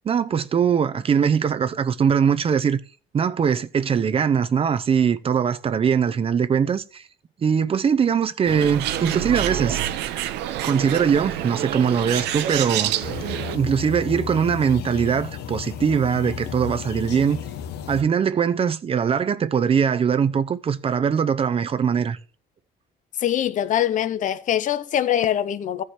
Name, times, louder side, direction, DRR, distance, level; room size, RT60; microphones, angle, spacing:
voice 1, 0.0-2.8 3.1-7.1 7.4-9.8 10.1-10.2 10.6-12.9 13.5-17.4 17.9-22.2, right 7 dB, 35° right, 0.6 m, -21 dB
Bird, 8.5-13.6, right 11 dB, 85° right, 0.8 m, -27 dB
sound 1, 13.0-18.0, left 8 dB, 80° left, 0.9 m, -33 dB
voice 2, 23.2-25.8, left 10 dB, 50° left, 0.7 m, -23 dB
14.0 x 4.8 x 4.3 m
cardioid pair, 110°, 17 cm